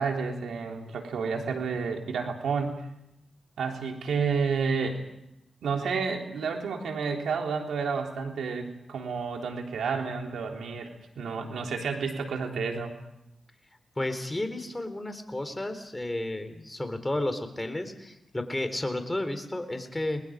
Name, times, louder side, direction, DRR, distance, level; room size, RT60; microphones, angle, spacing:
voice 1, 0.0-2.8 3.6-5.0 5.6-12.9, right 5 dB, 85° right, 2 dB, 3.5 m, -30 dB
voice 2, 14.0-20.2, left 1 dB, 20° left, 8 dB, 4.0 m, -32 dB
29.5 x 21.0 x 5.2 m, 0.84 s
cardioid pair, 50°, 0 cm